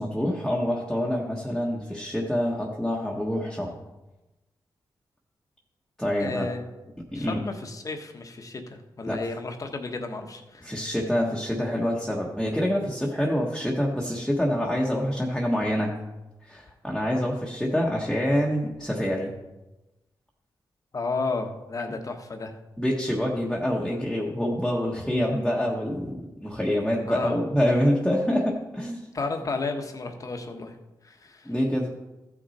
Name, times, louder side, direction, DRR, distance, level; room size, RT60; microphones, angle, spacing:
voice 1, 0.0-3.7 6.0-6.5 7.1-7.4 9.1-9.2 10.6-15.9 16.4-19.3 22.8-29.1 31.4-31.9, equal, 5° left, -3 dB, 1.3 m, -26 dB
voice 2, 6.2-6.6 7.1-10.9 20.9-22.6 27.1-27.4 29.1-30.8 31.0-31.5, left 3 dB, 40° left, 5 dB, 1.2 m, -33 dB
14.5 x 6.2 x 4.2 m, 1.0 s
wide cardioid pair, 100°, 8 cm